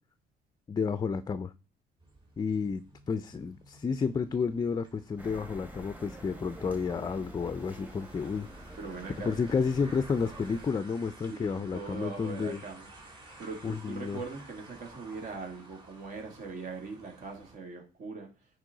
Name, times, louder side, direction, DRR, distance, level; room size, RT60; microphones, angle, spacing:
voice 1, 0.7-1.5 2.4-8.5 9.2-12.6 13.3-14.2, left 5 dB, 25° left, 0.4 m, -31 dB
sound 1, 2.0-17.6, right 2 dB, 30° right, 2.6 m, -53 dB
sound 2, 5.2-10.7, right 1 dB, 10° right, 1.3 m, -47 dB
voice 2, 8.8-9.3 11.3-12.9 13.4-18.3, right 4 dB, 60° right, 2.5 m, -41 dB
10.0 x 4.5 x 3.9 m
cardioid pair, 110°, 17 cm